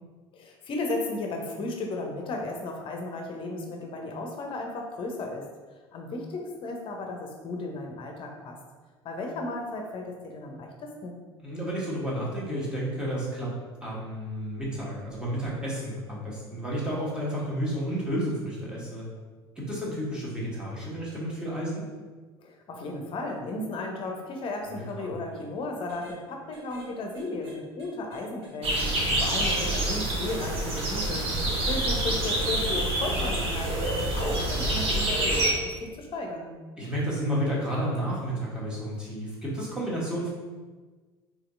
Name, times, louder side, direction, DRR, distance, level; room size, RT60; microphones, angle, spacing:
voice 1, 0.3-5.4 5.9-8.6 9.0-11.2 22.4-36.5, left 2 dB, 40° left, 2 dB, 0.7 m, -35 dB
voice 2, 11.4-13.5 13.8-19.1 19.6-21.9 24.6-25.1 28.8-29.2 36.8-40.3, equal, 5° right, -6 dB, 1.4 m, -31 dB
sound 1, 25.2-25.4 25.9-26.2 26.5-26.9 27.1-29.2 29.4-29.8 30.3-30.4 31.0-31.1 31.6-31.8 32.2-32.5 33.0-33.1 33.7-33.9 34.3-34.5 34.9-35.1, right 2 dB, 75° right, 1.1 m, -46 dB
sound 2, 28.6-35.5, right 1 dB, 45° right, 0.9 m, -27 dB
4.2 x 2.9 x 2.6 m, 1.4 s
figure-of-eight pair, 70°, 14 cm